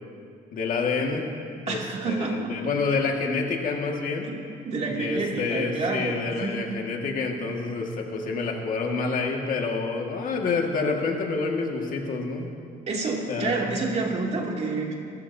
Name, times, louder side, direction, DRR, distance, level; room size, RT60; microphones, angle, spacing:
voice 1, 0.5-1.3 1.7-1.8 2.0-4.3 5.0-12.5 13.3-13.7, left 4 dB, 55° left, 1 dB, 1.9 m, -28 dB
voice 2, 1.7-2.5 4.2-4.3 4.6-6.7 12.9-15.0, right 3 dB, 40° right, -1 dB, 2.6 m, -28 dB
24.5 x 13.5 x 2.8 m, 2.4 s
cardioid pair, 110°, 17 cm